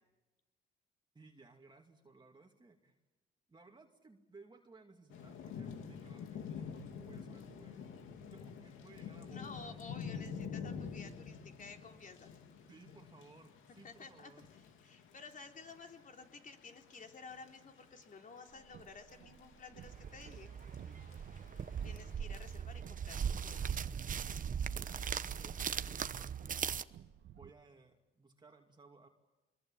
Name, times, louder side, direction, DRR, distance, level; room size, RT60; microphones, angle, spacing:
voice 1, 1.1-3.0 3.5-7.9 8.3-9.8 12.7-14.5 20.8-21.1 24.3-26.7 27.3-29.1, right 3 dB, 20° right, 2 dB, 2.4 m, -60 dB
Thunder / Rain, 5.1-22.1, left 6 dB, 85° left, 2.6 m, -48 dB
voice 2, 9.3-12.3 13.8-14.3 14.8-20.5 21.8-23.8, left 4 dB, 40° left, 4 dB, 3.6 m, -53 dB
Car, 18.5-27.5, right 10 dB, 65° right, 1.2 m, -59 dB
sound 1, 19.8-26.8, right 7 dB, 40° right, 0.9 m, -39 dB
25.0 x 22.0 x 8.8 m, 1.1 s
cardioid pair, 90°, 20 cm